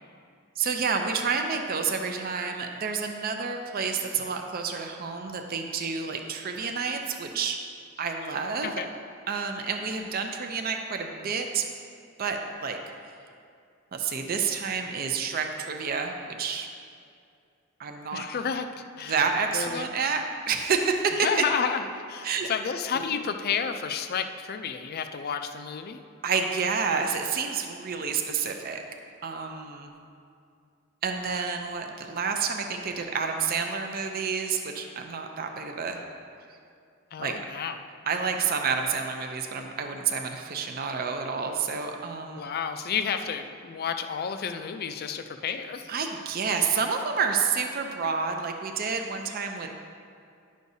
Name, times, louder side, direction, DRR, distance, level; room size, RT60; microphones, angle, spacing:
voice 1, 0.6-7.6 8.0-8.7 9.3-11.6 12.2-12.8 13.9-16.7 17.8-18.3 19.0-21.3 22.2-22.5 26.2-28.8 29.2-29.9 31.0-36.0 37.2-37.3 38.1-42.4 45.9-49.7, right 5 dB, 45° right, 4 dB, 0.5 m, -29 dB
voice 2, 18.1-19.2 19.5-19.9 21.2-26.0 37.1-37.8 42.4-45.9, left 6 dB, 50° left, 7 dB, 0.4 m, -31 dB
10.5 x 6.3 x 2.7 m, 2.3 s
head